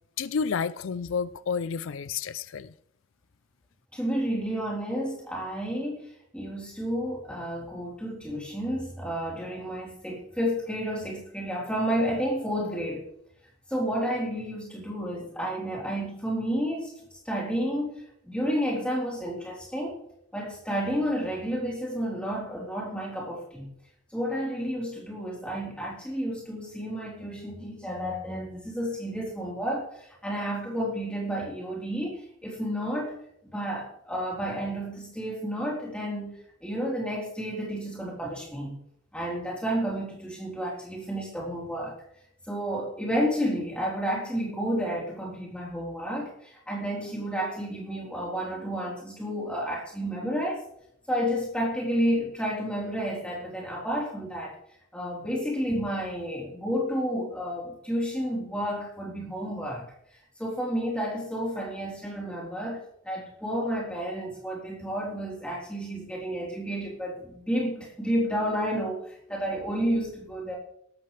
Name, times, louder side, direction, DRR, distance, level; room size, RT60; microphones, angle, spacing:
voice 1, 0.2-2.7, left 6 dB, 80° left, 0.5 m, -30 dB
voice 2, 3.9-13.1 13.7-20.0 20.3-23.7 24.1-36.3 36.6-38.8 39.1-42.0 42.5-50.7 51.1-54.6 54.9-59.9 60.4-70.5, equal, 5° left, 3.8 m, -31 dB
17.0 x 13.5 x 3.3 m
head